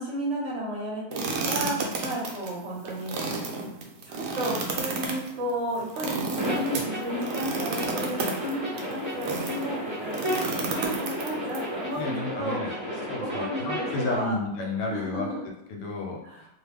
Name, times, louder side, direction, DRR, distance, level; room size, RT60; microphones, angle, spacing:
voice 1, 0.0-3.3 3.7-12.9 13.2-14.4 14.9-15.4 16.2-16.4, right 1 dB, 50° right, -5 dB, 1.1 m, -33 dB
sound 1, 1.1-9.7 10.1-11.6, right 3 dB, 80° right, 1.2 m, -32 dB
sound 2, 6.4-14.2, equal, 20° right, 0.8 m, -33 dB
voice 2, 12.0-12.7 13.1-15.3 15.7-16.5, left 2 dB, 80° left, 0 dB, 1.2 m, -31 dB
2.9 x 2.2 x 3.3 m, 0.83 s
omnidirectional pair, 1.8 m